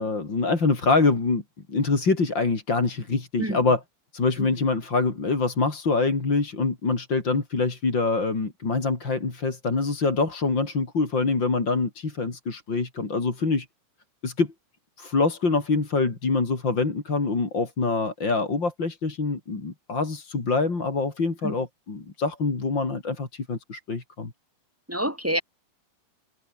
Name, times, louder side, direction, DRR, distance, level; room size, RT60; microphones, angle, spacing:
voice 1, 0.0-1.4 1.7-3.8 4.1-13.7 14.2-14.5 15.0-24.3, left 3 dB, 30° left, 4.4 m, -25 dB
voice 2, 24.9-25.4, equal, 5° right, 4.0 m, -27 dB
omnidirectional pair, 4.2 m